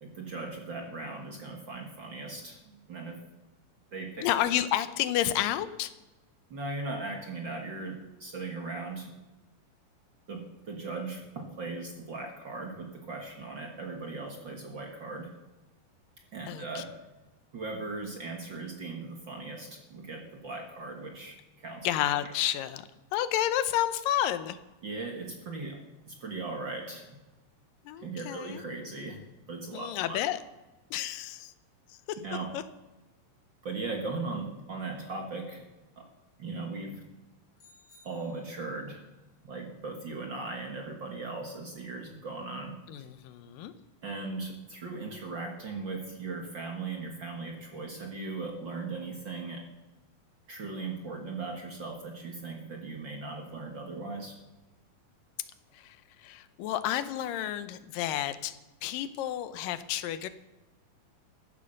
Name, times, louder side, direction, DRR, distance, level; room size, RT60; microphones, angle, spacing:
voice 1, 0.0-3.2 3.9-4.3 6.5-9.1 10.3-15.3 16.3-16.9 17.5-21.9 22.2-22.3 24.8-27.2 28.0-30.2 32.2-32.6 33.6-35.6 36.0-36.1 36.4-37.0 38.0-39.0 39.4-43.1 44.0-49.6 50.5-54.4, right 3 dB, 45° right, 2 dB, 1.7 m, -38 dB
voice 2, 4.2-5.9 16.5-16.8 21.8-24.6 27.9-28.6 29.7-30.4 30.9-31.5 32.1-32.2 32.5-32.6 42.9-43.7 55.7-56.0 56.2-58.5 58.8-60.3, left 12 dB, 85° left, 13 dB, 2.5 m, -30 dB
sound 1, 37.5-38.9, left 2 dB, 30° left, 5.1 m, -60 dB
15.0 x 11.0 x 6.5 m, 1.1 s
omnidirectional pair, 3.9 m